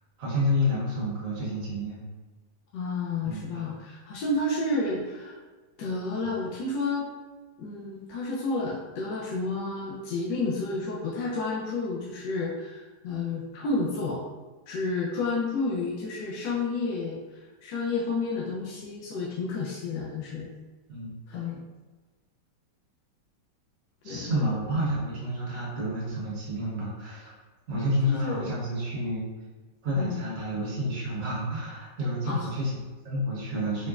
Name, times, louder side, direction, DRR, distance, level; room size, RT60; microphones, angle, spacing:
voice 1, 0.2-2.0 3.2-3.5 6.2-6.3 20.9-21.1 24.0-27.3 27.7-29.2 29.8-33.9, equal, 50° right, -7 dB, 1.4 m, -29 dB
voice 2, 2.7-5.4 5.8-7.1 7.6-14.2 14.7-20.5 21.3-21.6 24.0-24.5 28.1-28.5 30.0-30.2 32.3-32.5, left 3 dB, 80° left, -5 dB, 1.2 m, -31 dB
5.0 x 2.1 x 2.3 m, 1.3 s
omnidirectional pair, 1.9 m